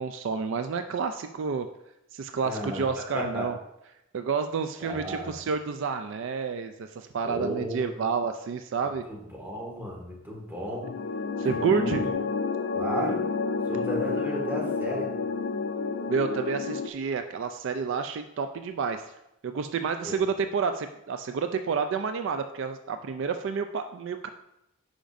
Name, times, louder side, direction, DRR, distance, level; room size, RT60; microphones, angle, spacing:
voice 1, 0.0-1.7 2.1-3.6 4.1-9.0 11.4-12.0 16.1-19.1 19.4-24.3, right 5 dB, 65° right, 8 dB, 0.4 m, -29 dB
voice 2, 2.4-3.5 4.8-5.3 7.2-8.1 9.1-10.9 11.4-12.0 12.7-13.3 13.7-15.1 20.0-20.2, equal, 10° right, -3 dB, 1.8 m, -34 dB
sound 1, 10.8-16.9, left 4 dB, 60° left, 0.5 m, -30 dB
10.0 x 5.0 x 2.5 m, 0.86 s
head